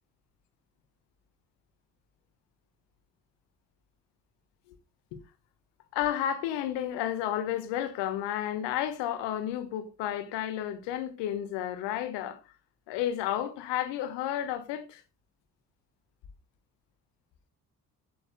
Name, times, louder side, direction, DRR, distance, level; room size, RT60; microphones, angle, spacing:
voice 1, 5.9-12.4 12.9-15.0, left 11 dB, 60° left, 1.4 m, -32 dB
14.5 x 6.9 x 2.2 m
figure-of-eight pair, 45°, 48 cm